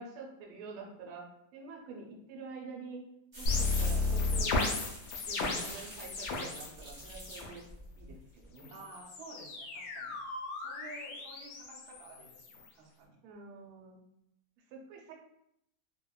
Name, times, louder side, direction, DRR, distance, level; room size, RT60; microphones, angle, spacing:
voice 1, 0.0-3.0 3.4-4.8 5.2-7.6 8.0-8.7 13.2-14.0 14.7-15.1, right 4 dB, 90° right, 0 dB, 1.5 m, -47 dB
sound 1, 3.3-8.5, equal, 30° right, 0.3 m, -46 dB
sound 2, 3.5-6.7 7.0-7.5 8.6-12.7, left 3 dB, 75° left, 1.3 m, -34 dB
voice 2, 8.7-10.2 10.6-13.2, right 2 dB, 65° right, -4 dB, 1.0 m, -51 dB
3.5 x 2.1 x 2.2 m, 0.79 s
omnidirectional pair, 2.3 m